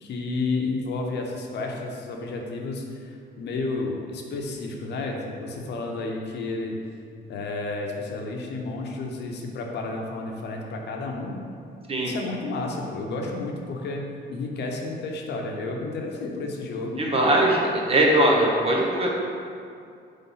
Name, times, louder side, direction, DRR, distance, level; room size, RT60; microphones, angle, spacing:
voice 1, 0.0-6.8 7.3-11.4 12.0-17.0, left 3 dB, 65° left, 1 dB, 0.8 m, -31 dB
voice 2, 17.0-19.1, right 1 dB, 30° right, -1 dB, 0.9 m, -20 dB
5.5 x 3.5 x 5.5 m, 2.4 s
cardioid pair, 150°, 19 cm